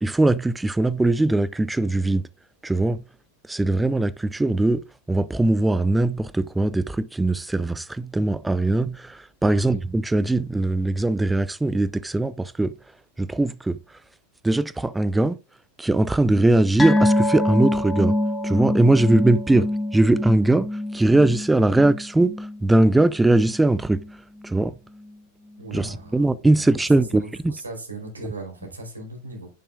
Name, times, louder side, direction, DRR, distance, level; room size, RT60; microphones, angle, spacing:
voice 1, 0.0-2.3 2.6-3.0 3.5-4.8 5.1-12.7 13.2-13.8 14.4-15.4 15.8-18.2 18.4-19.7 19.9-24.0 24.4-24.8 25.7-27.5, right 2 dB, 5° right, 0.6 m, -20 dB
sound 1, 16.8-23.6 23.9-24.1 24.5-24.6, left 1 dB, 10° left, 1.4 m, -25 dB
voice 2, 25.6-26.2 26.5-26.8 27.1-29.5, right 3 dB, 80° right, 4.6 m, -38 dB
10.5 x 10.0 x 2.5 m
figure-of-eight pair, 90°, 0 cm